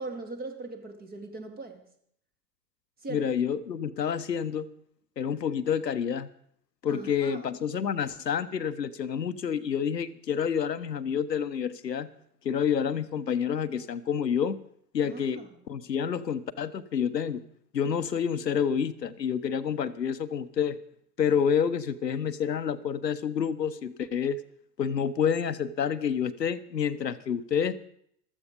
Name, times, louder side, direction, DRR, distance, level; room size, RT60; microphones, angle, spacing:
voice 1, 0.0-1.9 3.0-3.3 6.9-7.4 15.0-15.5, right 3 dB, 20° right, 6 dB, 2.3 m, -40 dB
voice 2, 3.1-4.7 5.2-6.3 6.8-12.1 12.4-14.6 14.9-15.4 15.7-17.4 17.7-20.8 21.2-24.4 24.8-27.8, left 7 dB, 75° left, 13 dB, 1.0 m, -28 dB
15.0 x 13.5 x 5.2 m, 0.69 s
figure-of-eight pair, 95°, 49 cm